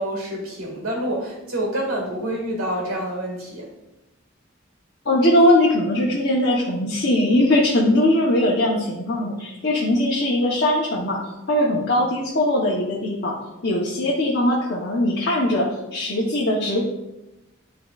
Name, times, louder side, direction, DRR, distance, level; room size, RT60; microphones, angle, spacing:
voice 1, 0.0-3.7, right 1 dB, 85° right, 0 dB, 2.0 m, -27 dB
voice 2, 5.0-11.2 11.5-13.3 13.6-16.8, left 1 dB, 55° left, -4 dB, 0.9 m, -20 dB
10.5 x 3.7 x 2.4 m, 0.95 s
head